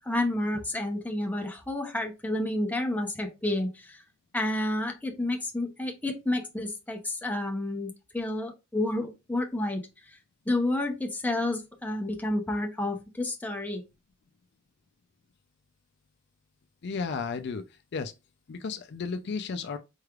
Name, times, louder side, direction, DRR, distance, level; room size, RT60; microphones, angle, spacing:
voice 1, 0.0-4.0 4.3-9.8 10.1-10.2 10.5-13.8, left 1 dB, 10° left, 0.7 m, -30 dB
voice 2, 16.8-17.7 17.9-18.1 18.5-19.8, left 5 dB, 55° left, 0.4 m, -33 dB
4.5 x 3.2 x 2.4 m
head